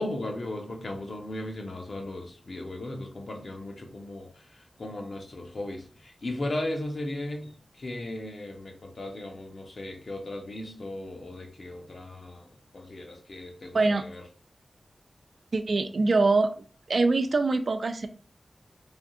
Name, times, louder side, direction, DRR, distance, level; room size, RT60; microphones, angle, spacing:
voice 1, 0.0-12.5 12.7-14.2, left 1 dB, 60° left, 2 dB, 0.7 m, -36 dB
voice 2, 15.5-16.5 16.9-18.1, right 3 dB, 65° right, 9 dB, 0.3 m, -23 dB
3.4 x 2.6 x 2.4 m, 0.42 s
wide cardioid pair, 90°, 0 cm